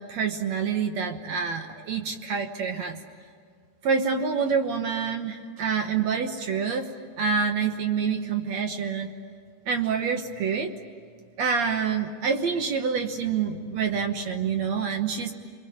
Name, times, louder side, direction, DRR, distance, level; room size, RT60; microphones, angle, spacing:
voice 1, 0.0-3.0 3.8-6.9 7.2-9.1 9.7-10.7 11.4-15.3, right 6 dB, 65° right, 5 dB, 1.8 m, -27 dB
29.5 x 22.5 x 8.7 m, 2.1 s
omnidirectional pair, 4.6 m